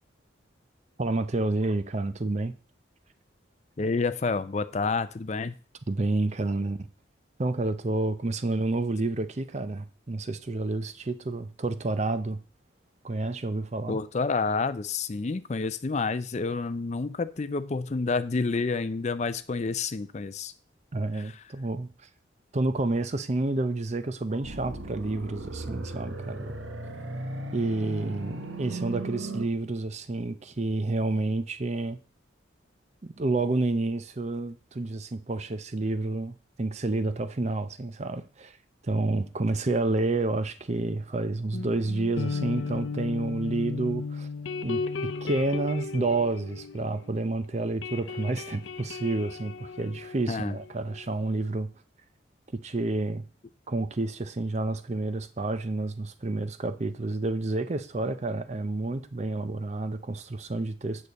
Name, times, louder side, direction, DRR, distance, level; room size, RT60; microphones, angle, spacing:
voice 1, 1.0-2.6 5.9-6.8 7.4-12.4 13.0-14.0 20.9-21.9 22.5-26.5 27.5-32.0 33.0-38.5 38.8-44.3 44.6-51.7 52.5-53.2 53.7-61.1, right 2 dB, 35° right, 0.5 m, -29 dB
voice 2, 3.8-5.5 13.9-20.5 21.1-21.3 50.3-50.6, left 4 dB, 35° left, 0.4 m, -29 dB
sound 1, 24.4-29.4, right 2 dB, 75° right, 1.2 m, -37 dB
sound 2, 41.5-47.3 47.6-51.1, left 4 dB, 80° left, 0.7 m, -35 dB
8.8 x 6.5 x 4.1 m
head